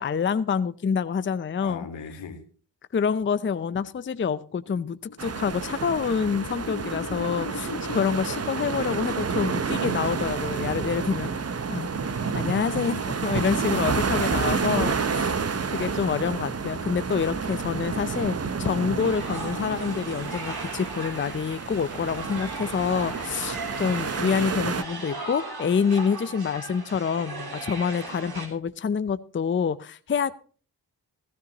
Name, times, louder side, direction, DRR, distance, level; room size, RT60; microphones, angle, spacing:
voice 1, 0.0-1.8 2.9-11.3 11.7-11.9 12.3-14.9 15.7-30.3, left 6 dB, 30° left, 14 dB, 0.6 m, -27 dB
voice 2, 1.6-2.5 14.1-16.0 22.3-22.4, left 5 dB, 85° left, 5 dB, 1.7 m, -40 dB
sound 1, 3.3-8.0, left 3 dB, 50° left, 1.3 m, -41 dB
sound 2, 5.2-24.8, right 5 dB, 35° right, 0.8 m, -29 dB
sound 3, 19.0-28.5, right 3 dB, 55° right, 3.2 m, -38 dB
15.5 x 13.0 x 2.9 m, 0.40 s
supercardioid pair, 40°, 44 cm